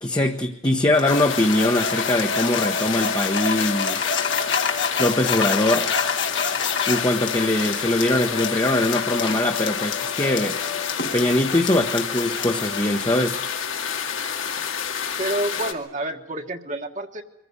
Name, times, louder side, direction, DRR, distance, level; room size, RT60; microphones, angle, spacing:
voice 1, 0.0-4.4 5.0-5.9 6.9-10.6 11.1-13.4, left 1 dB, 20° left, 3 dB, 1.0 m, -22 dB
sound 1, 0.9-12.8, left 6 dB, 65° left, 1.7 m, -28 dB
sound 2, 1.1-15.7, left 7 dB, 85° left, 2.2 m, -29 dB
voice 2, 15.2-17.2, right 1 dB, 35° right, 4 dB, 1.4 m, -28 dB
23.5 x 15.0 x 9.6 m, 0.92 s
head